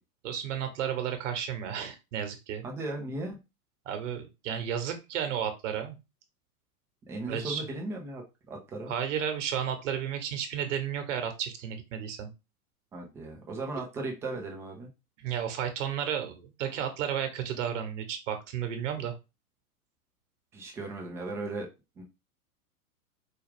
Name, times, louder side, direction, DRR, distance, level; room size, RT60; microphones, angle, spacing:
voice 1, 0.2-2.6 3.9-5.9 7.2-7.6 8.9-12.3 15.2-19.1, right 8 dB, 50° right, 8 dB, 1.1 m, -33 dB
voice 2, 2.6-3.4 7.1-8.9 12.9-14.9 20.5-21.7 22.0-22.1, right 2 dB, 5° right, 1 dB, 0.4 m, -37 dB
4.8 x 2.3 x 3.3 m, 0.26 s
figure-of-eight pair, 105°, 46 cm